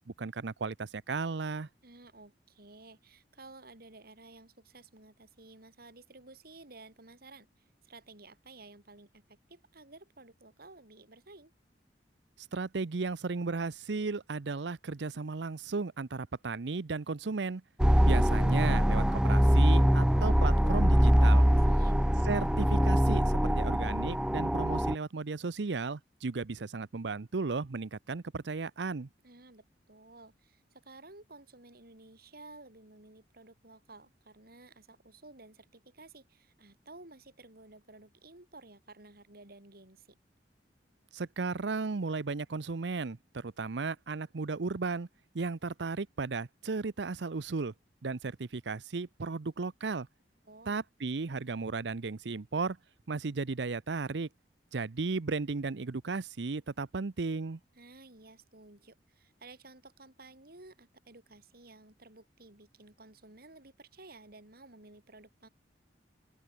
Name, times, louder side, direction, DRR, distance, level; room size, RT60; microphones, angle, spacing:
voice 1, 0.2-1.7 12.5-17.6 18.0-21.4 22.2-29.1 41.1-45.1 45.3-47.7 48.0-50.1 50.7-52.8 53.1-54.3 54.7-57.6, right 4 dB, 80° right, 0.7 m, -35 dB
voice 2, 1.8-11.5 21.7-22.0 29.2-40.2 50.4-50.8 57.7-65.5, right 2 dB, 60° right, 5.9 m, -54 dB
sound 1, 17.8-24.9, equal, 5° right, 0.7 m, -23 dB
open air
head